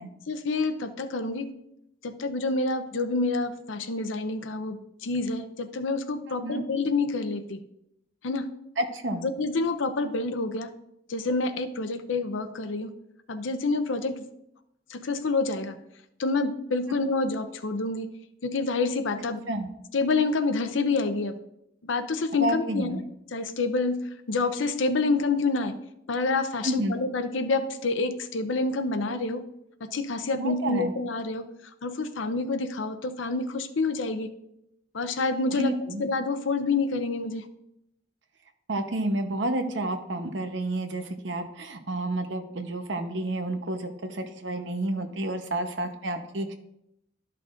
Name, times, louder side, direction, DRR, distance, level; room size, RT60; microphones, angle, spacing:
voice 1, 0.3-1.5 2.0-7.6 8.2-8.5 9.4-10.7 11.1-12.9 13.3-14.3 14.9-15.8 16.2-18.1 18.4-19.4 19.9-21.4 21.8-23.0 23.3-24.0 24.3-25.7 26.1-29.4 29.8-31.4 31.8-34.3 34.9-35.7 36.0-37.5, left 3 dB, 80° left, 10 dB, 0.7 m, -27 dB
voice 2, 6.3-6.6 8.8-9.3 19.5-19.7 22.4-23.0 26.6-27.0 30.3-30.9 35.5-36.1 38.7-46.5, right 1 dB, 70° right, 7 dB, 0.9 m, -30 dB
12.5 x 5.8 x 2.5 m, 0.81 s
head